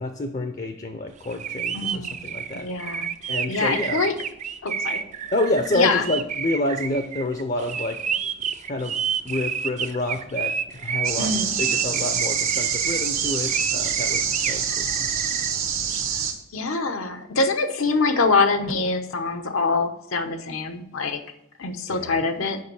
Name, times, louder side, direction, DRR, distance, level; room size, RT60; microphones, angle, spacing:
voice 1, 0.0-2.7 3.3-4.0 5.3-8.0 8.7-9.0 9.2-10.5 10.8-11.3 11.6-15.1 21.9-22.3, left 2 dB, 35° left, 7 dB, 0.5 m, -28 dB
sound 1, 1.2-15.5, right 7 dB, 35° right, 0.4 m, -30 dB
voice 2, 1.7-2.2 2.5-4.1 4.6-5.0 5.7-6.1 11.2-11.5 16.5-21.2 21.6-22.6, left 3 dB, 85° left, 6 dB, 0.8 m, -24 dB
sound 2, 11.0-16.3, right 7 dB, 80° right, 1.2 m, -26 dB
6.5 x 5.3 x 6.9 m, 0.75 s
head